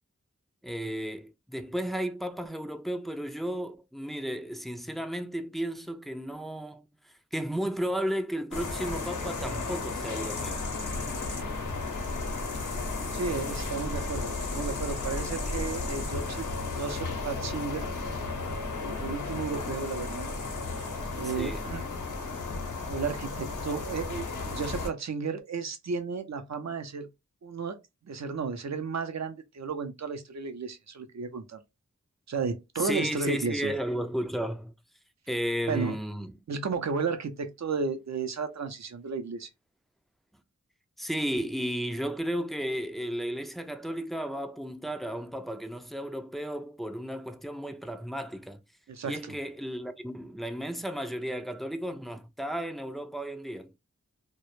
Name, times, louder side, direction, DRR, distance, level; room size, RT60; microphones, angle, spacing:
voice 1, 0.6-6.9 7.3-10.6 21.2-21.7 32.8-34.7 35.3-36.3 41.0-48.6 49.1-53.7, equal, ahead, 0.3 m, -33 dB
sound 1, 8.5-24.9, left 3 dB, 80° left, 0.7 m, -34 dB
sound 2, 10.5-16.1, left 1 dB, 45° left, 0.6 m, -38 dB
voice 2, 13.1-16.5 16.7-17.9 18.8-20.3 21.1-21.8 22.9-27.1 27.4-27.8 28.0-31.6 32.3-33.7 35.7-36.0 36.5-39.5 48.9-49.4, right 5 dB, 60° right, 0.5 m, -33 dB
2.1 x 2.0 x 2.9 m
wide cardioid pair, 45°, 30 cm